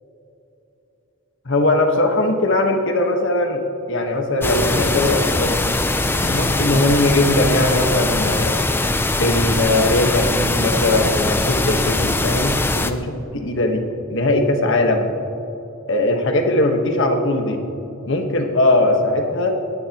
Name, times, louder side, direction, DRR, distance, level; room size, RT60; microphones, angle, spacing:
voice 1, 1.4-3.6 3.9-5.6 6.2-8.6 9.2-15.1 15.9-17.6 18.0-19.6, left 2 dB, 55° left, 4 dB, 1.4 m, -20 dB
sound 1, 4.4-12.9, left 2 dB, 10° left, 0.4 m, -21 dB
19.0 x 15.5 x 3.0 m, 2.9 s
head